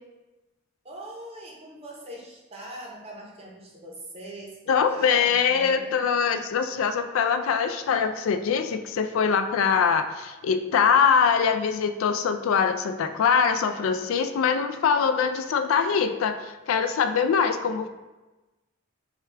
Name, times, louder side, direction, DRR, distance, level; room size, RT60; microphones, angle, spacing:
voice 1, 0.8-4.6 4.9-6.0, right 1 dB, 30° right, -2 dB, 0.7 m, -42 dB
voice 2, 4.7-17.9, left 6 dB, 75° left, 8 dB, 0.3 m, -23 dB
4.6 x 2.3 x 3.3 m, 1.1 s
head